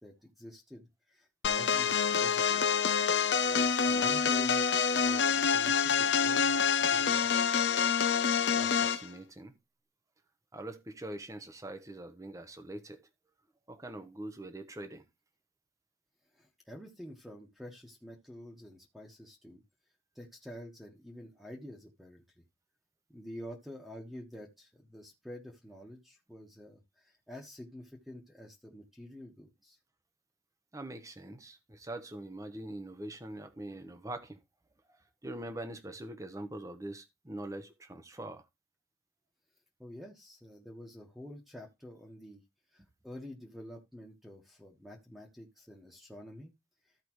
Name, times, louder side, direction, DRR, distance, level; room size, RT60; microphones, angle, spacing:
voice 1, 0.0-2.6 3.5-4.6 4.9-7.3 16.3-19.6 20.1-22.4 23.1-29.8 39.8-42.4 42.7-46.5, left 1 dB, ahead, 1.4 m, -48 dB
sound 1, 1.4-9.1, left 6 dB, 75° left, 0.7 m, -27 dB
voice 2, 8.5-9.6 10.5-13.0 13.7-15.0 30.7-34.4 34.9-38.4, right 1 dB, 15° right, 0.9 m, -43 dB
14.0 x 4.9 x 3.1 m
head